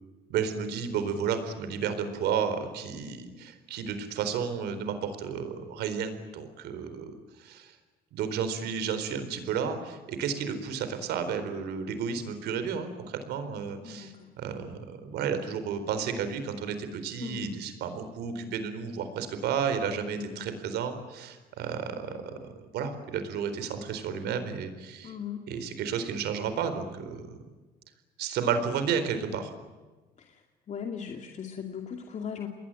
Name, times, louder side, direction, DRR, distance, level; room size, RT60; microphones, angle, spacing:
voice 1, 0.3-7.1 7.4-7.8 8.1-25.2 25.5-27.3 28.2-29.5, right 6 dB, 80° right, 10 dB, 4.2 m, -32 dB
voice 2, 13.8-14.3 17.2-17.6 20.1-20.5 22.0-22.5 25.0-25.4 30.2-30.4 30.7-32.5, left 7 dB, 45° left, 3 dB, 2.5 m, -39 dB
28.0 x 21.0 x 9.0 m, 1.2 s
cardioid pair, 110°, 17 cm